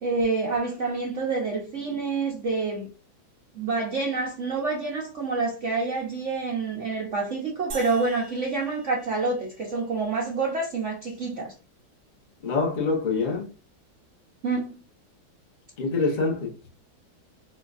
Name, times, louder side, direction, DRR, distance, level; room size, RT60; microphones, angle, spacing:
voice 1, 0.0-2.9 3.5-11.5 14.4-14.8, right 3 dB, 85° right, 0.6 m, -27 dB
sound 1, 7.7-10.1, right 3 dB, 50° right, 1.4 m, -44 dB
voice 2, 12.4-13.5 15.8-16.5, left 4 dB, 70° left, 0.4 m, -25 dB
4.3 x 2.3 x 2.4 m
omnidirectional pair, 2.2 m